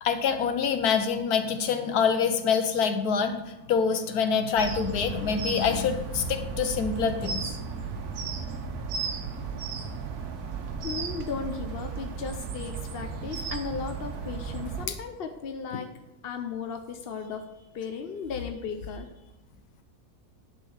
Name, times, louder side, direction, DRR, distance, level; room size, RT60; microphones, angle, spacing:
voice 1, 0.0-7.4, left 6 dB, 80° left, 7 dB, 1.5 m, -26 dB
sound 1, 4.6-14.9, right 5 dB, 85° right, 1.5 m, -35 dB
voice 2, 10.8-15.9 16.2-19.1, left 6 dB, 50° left, 5 dB, 0.8 m, -36 dB
11.0 x 4.5 x 6.4 m, 0.94 s
omnidirectional pair, 1.6 m